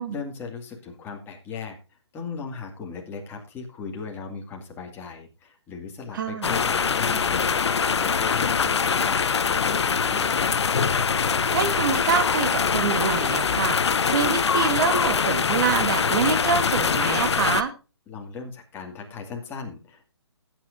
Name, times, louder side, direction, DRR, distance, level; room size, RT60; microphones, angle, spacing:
voice 1, 0.0-10.3 18.1-20.1, left 5 dB, 15° left, 1 dB, 2.2 m, -37 dB
voice 2, 6.1-6.5 11.5-17.7, right 6 dB, 45° right, 8 dB, 1.8 m, -26 dB
sound 1, 6.4-17.6, left 6 dB, 70° left, 0.8 m, -23 dB
15.5 x 8.9 x 2.6 m, 0.30 s
figure-of-eight pair, 145°, 15 cm